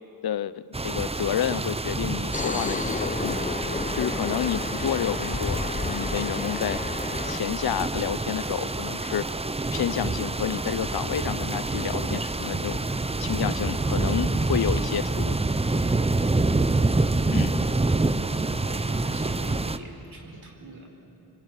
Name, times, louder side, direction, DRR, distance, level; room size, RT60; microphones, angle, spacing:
voice 1, 0.2-3.5 3.9-6.8 7.2-9.3 9.7-12.8 13.2-15.3 17.2-17.7, left 10 dB, 70° left, 17 dB, 0.7 m, -30 dB
sound 1, 0.7-19.8, right 2 dB, 15° right, 0.8 m, -27 dB
sound 2, 2.3-7.4, left 3 dB, 20° left, 0.8 m, -31 dB
voice 2, 18.2-20.9, right 3 dB, 65° right, 3 dB, 4.2 m, -45 dB
24.5 x 21.5 x 9.0 m, 3.0 s
cardioid pair, 70°, 39 cm